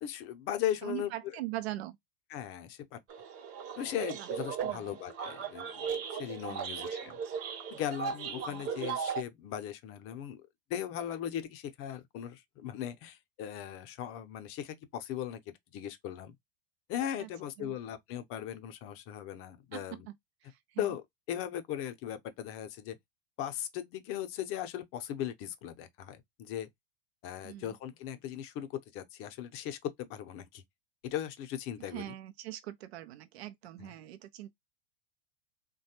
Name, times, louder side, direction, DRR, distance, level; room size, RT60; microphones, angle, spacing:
voice 1, 0.0-1.1 2.3-3.0 3.8-7.2 7.7-10.4 10.7-16.3 16.9-20.1 20.8-21.0 21.3-23.0 23.4-26.7 27.2-30.6 31.0-32.1 33.8-33.9, left 10 dB, 45° left, 0.6 m, -38 dB
voice 2, 0.8-2.0 4.2-4.3 4.6-4.9 8.4-8.6 17.2-17.3 17.6-17.7 19.7-20.0 20.4-20.9 27.4-27.7 31.9-34.5, right 15 dB, 75° right, 0.5 m, -41 dB
sound 1, 3.1-9.2, right 7 dB, 45° right, 0.9 m, -37 dB
3.1 x 2.2 x 2.8 m
hypercardioid pair, 100°, 31 cm